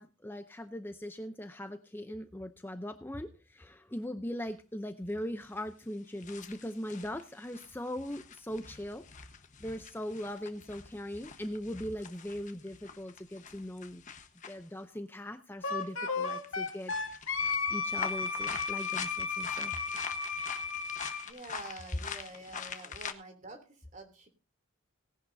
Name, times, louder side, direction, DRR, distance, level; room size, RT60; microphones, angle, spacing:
voice 1, 0.0-9.0 9.6-14.0 14.5-16.9 17.7-19.8, left 1 dB, 10° left, 8 dB, 0.6 m, -40 dB
sound 1, 4.6-4.7 5.6-5.7 6.1-14.7 15.7-15.9 16.2-23.1, left 6 dB, 35° left, 1.2 m, -45 dB
Wind instrument woodwind instrument, 15.6-21.3, left 4 dB, 70° left, 2.1 m, -34 dB
voice 2, 21.2-24.3, right 2 dB, 35° right, 6 dB, 3.0 m, -47 dB
18.0 x 11.0 x 2.7 m, 0.34 s
head